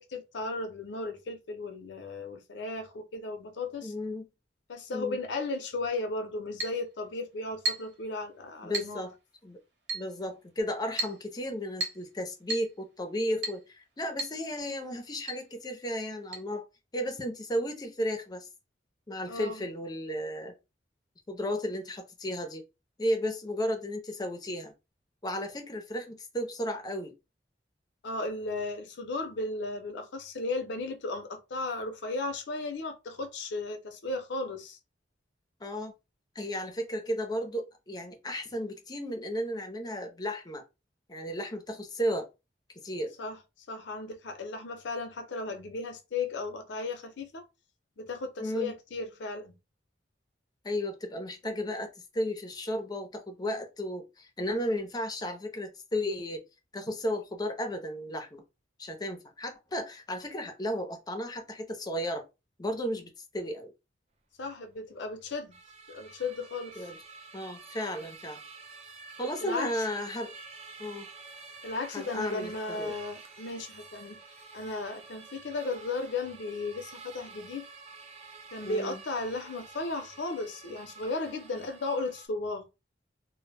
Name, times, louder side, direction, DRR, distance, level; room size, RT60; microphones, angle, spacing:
voice 1, 0.0-3.9 4.7-9.0 19.3-19.7 28.0-34.8 43.2-43.4 43.7-47.5 48.0-49.6 64.4-65.6 65.9-66.9 69.4-69.7 71.6-74.2 74.5-77.7 78.5-82.6, left 3 dB, 75° left, 0.6 m, -35 dB
voice 2, 3.8-4.3 4.9-5.2 8.6-9.1 9.4-9.6 9.9-16.6 16.9-18.5 19.1-20.5 21.3-22.6 23.0-24.7 25.2-27.2 35.6-35.9 36.4-40.6 41.1-42.3 42.8-43.1 48.4-48.7 50.6-56.4 56.7-58.4 58.8-62.2 62.6-63.7 66.8-67.0 67.3-68.4 69.2-70.3 70.8-71.1 71.9-72.9 78.6-79.0, equal, 20° left, 0.5 m, -34 dB
Chink clink, 6.6-6.8 7.7-8.0 8.7-9.0 9.9-10.1 11.0-11.2 11.8-12.1 12.5-12.7 13.4-13.6 14.2-14.4 14.7-14.8 15.3-15.4 16.3-16.4, right 2 dB, 80° right, 0.9 m, -33 dB
sound 1, 65.5-82.3, right 4 dB, 35° right, 0.4 m, -49 dB
2.1 x 2.1 x 3.2 m
head